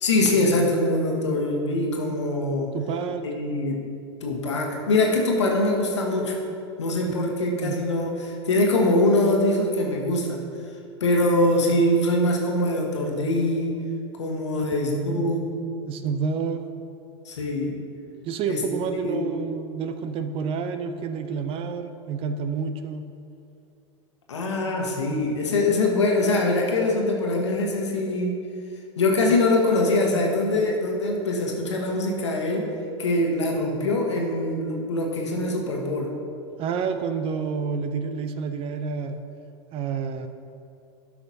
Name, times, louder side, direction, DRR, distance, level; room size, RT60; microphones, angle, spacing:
voice 1, 0.0-2.7 3.2-3.8 4.2-6.4 6.8-10.4 11.0-13.7 14.1-15.6 17.2-17.7 18.5-18.6 19.0-19.2 24.3-28.4 29.0-32.7 33.0-36.1, left 2 dB, 80° left, 0 dB, 1.3 m, -23 dB
voice 2, 2.7-3.3 7.1-7.2 7.6-7.8 14.6-14.7 14.9-15.3 15.9-16.6 18.2-23.1 36.6-39.2 39.7-40.3, right 5 dB, 40° right, 9 dB, 0.5 m, -29 dB
12.0 x 5.8 x 2.7 m, 2.5 s
hypercardioid pair, 90°, 15 cm